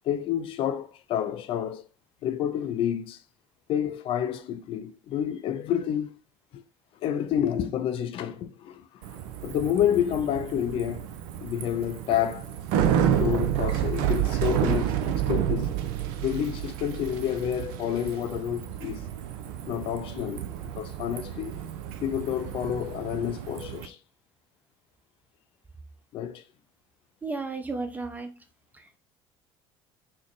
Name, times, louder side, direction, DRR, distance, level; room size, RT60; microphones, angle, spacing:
voice 1, 0.0-1.8 2.2-3.2 3.7-6.1 6.5-6.6 7.0-8.9 9.4-11.1 11.4-12.5 13.1-15.7 16.2-19.0 19.7-20.5 20.8-21.6 22.0-24.0 26.1-26.4, left 10 dB, 45° left, 0.4 m, -29 dB
Bicycle, 9.0-23.9, right 10 dB, 60° right, 0.4 m, -30 dB
voice 2, 27.2-28.3 28.7-29.0, right 3 dB, 15° right, 0.7 m, -34 dB
3.9 x 2.0 x 3.0 m
figure-of-eight pair, 60°, 13 cm